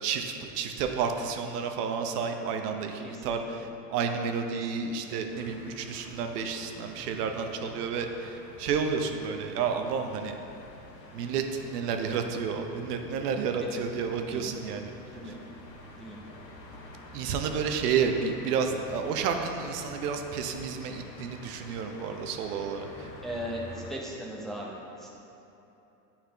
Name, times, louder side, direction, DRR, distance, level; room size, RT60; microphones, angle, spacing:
voice 1, 0.0-10.4 11.1-14.9 15.3-15.4 17.1-23.1, right 6 dB, 65° right, 5 dB, 0.8 m, -31 dB
voice 2, 3.0-3.4 4.5-5.2 13.6-13.8 14.3-14.5 15.1-15.3 15.9-16.2 23.2-25.1, equal, ahead, -4 dB, 0.7 m, -39 dB
sound 1, 5.3-24.0, left 2 dB, 80° left, 1.4 m, -48 dB
9.4 x 4.3 x 3.4 m, 3.0 s
hypercardioid pair, 110°, 50 cm